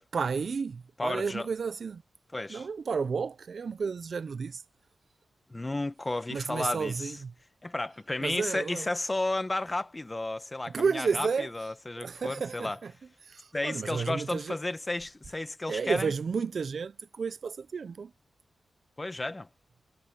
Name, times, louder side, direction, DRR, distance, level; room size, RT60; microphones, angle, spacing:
voice 1, 0.1-2.0 2.5-4.6 6.3-7.3 8.2-8.9 10.7-11.5 12.0-12.9 13.2-14.6 15.7-18.1, right 5 dB, 55° right, 0.5 m, -32 dB
voice 2, 1.0-1.5 2.3-2.7 5.5-7.1 7.6-12.8 13.5-16.1 19.0-19.5, left 2 dB, 20° left, 1.3 m, -33 dB
wide cardioid pair, 120°, 0 cm